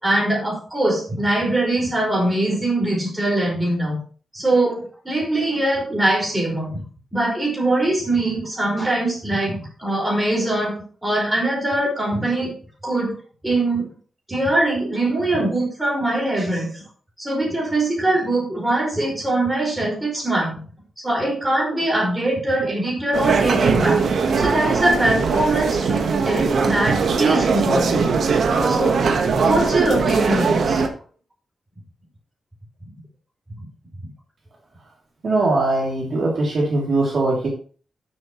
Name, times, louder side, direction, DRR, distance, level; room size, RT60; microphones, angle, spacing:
voice 1, 0.0-4.0 4.3-6.8 7.1-10.8 11.0-12.5 12.8-13.1 13.4-13.9 14.3-16.8 17.2-20.6 21.0-24.0 24.3-28.1 28.7-28.9 29.3-30.8, right 1 dB, 10° right, -3 dB, 5.3 m, -22 dB
sound 1, 23.1-30.9, right 5 dB, 70° right, 1.3 m, -20 dB
voice 2, 35.2-37.5, right 2 dB, 45° right, -3 dB, 3.0 m, -21 dB
12.5 x 7.7 x 3.1 m, 0.41 s
wide cardioid pair, 150°, 0 cm